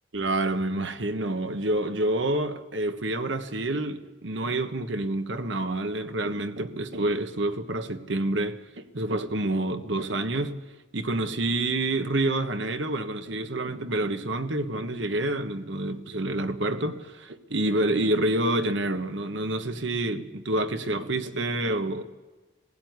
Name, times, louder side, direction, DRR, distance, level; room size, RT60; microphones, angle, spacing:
voice 1, 0.1-10.6 10.9-22.0, right 1 dB, 75° right, 1.4 m, -28 dB
20.0 x 16.0 x 9.5 m
head